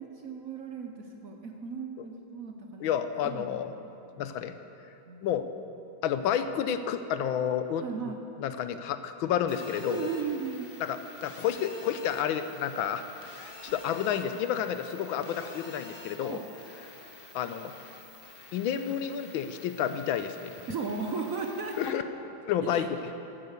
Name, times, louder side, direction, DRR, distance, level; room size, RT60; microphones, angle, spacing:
voice 1, 0.0-2.9 3.2-3.6 5.1-5.3 7.8-8.2 9.9-10.7 16.2-16.4 20.7-21.9 22.6-22.9, right 5 dB, 55° right, 3 dB, 1.0 m, -36 dB
voice 2, 2.8-3.7 4.2-4.5 5.2-5.5 6.0-8.1 8.4-10.1 10.8-13.0 13.4-16.4 17.3-17.7 18.5-20.5 21.8-22.0 22.5-22.9, left 9 dB, 80° left, 10 dB, 1.4 m, -30 dB
Telephone, 9.5-21.9, left 3 dB, 35° left, 1.0 m, -48 dB
15.5 x 9.4 x 6.6 m, 2.8 s
omnidirectional pair, 2.2 m